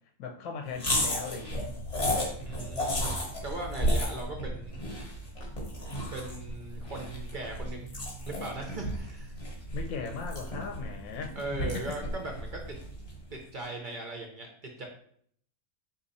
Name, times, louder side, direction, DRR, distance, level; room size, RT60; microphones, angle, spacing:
voice 1, 0.2-1.7 9.7-11.8, left 5 dB, 70° left, 4 dB, 0.9 m, -38 dB
sound 1, 0.8-13.2, equal, 30° left, 0.8 m, -33 dB
voice 2, 2.5-4.7 6.1-7.9 8.3-9.3 11.4-12.8 13.3-14.9, right 2 dB, 65° right, 1 dB, 0.5 m, -39 dB
4.1 x 2.8 x 4.0 m, 0.63 s
omnidirectional pair, 1.6 m